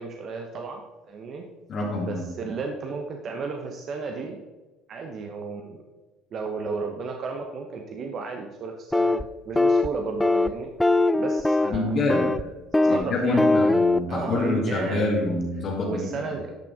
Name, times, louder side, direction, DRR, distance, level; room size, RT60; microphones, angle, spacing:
voice 1, 0.0-1.4 2.0-4.4 4.9-5.8 6.3-10.7 11.2-12.0 12.8-13.8 14.1-15.2 15.8-16.6, right 4 dB, 45° right, 3 dB, 1.0 m, -33 dB
voice 2, 1.7-2.2 11.7-12.2 12.9-16.3, left 2 dB, 45° left, -2 dB, 2.3 m, -26 dB
sound 1, 8.9-9.2 9.6-9.9 10.2-10.5 10.8-11.8 12.1-12.4 12.7-13.0 13.4-14.0, left 2 dB, 10° left, 0.4 m, -20 dB
11.5 x 5.9 x 3.6 m, 1.2 s
hypercardioid pair, 65°, 0 cm